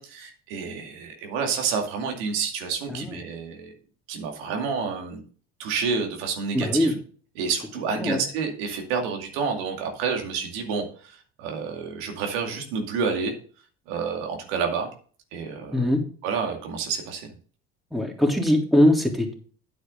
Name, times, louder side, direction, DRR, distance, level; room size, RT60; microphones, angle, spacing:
voice 1, 0.0-3.7 4.1-5.2 5.6-7.0 7.4-13.3 13.9-14.9 15.3-15.8 16.2-17.4, right 5 dB, 80° right, 3 dB, 2.4 m, -29 dB
voice 2, 6.5-6.9 8.0-8.2 15.7-16.0 17.9-19.3, left 1 dB, ahead, 1 dB, 3.4 m, -21 dB
9.8 x 8.6 x 3.9 m, 0.43 s
hypercardioid pair, 60°, 31 cm